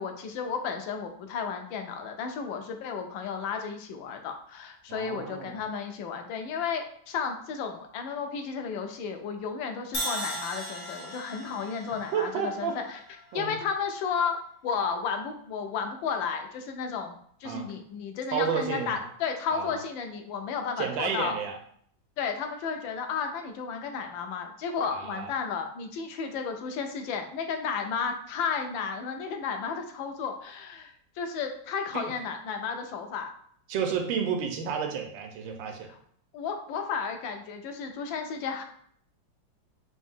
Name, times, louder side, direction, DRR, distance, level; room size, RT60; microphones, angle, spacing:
voice 1, 0.0-13.0 13.3-14.4 14.6-17.2 17.4-21.4 22.2-33.3 36.3-38.6, left 6 dB, 80° left, 5 dB, 1.3 m, -33 dB
voice 2, 4.9-5.6 12.1-12.8 13.3-13.6 17.4-17.7 18.3-19.1 19.5-19.8 20.8-21.6 24.9-25.3 33.7-35.9, right 7 dB, 85° right, 4 dB, 1.4 m, -31 dB
Crash cymbal, 9.9-14.0, equal, 50° left, 0.4 m, -37 dB
4.0 x 2.6 x 3.6 m, 0.62 s
omnidirectional pair, 2.1 m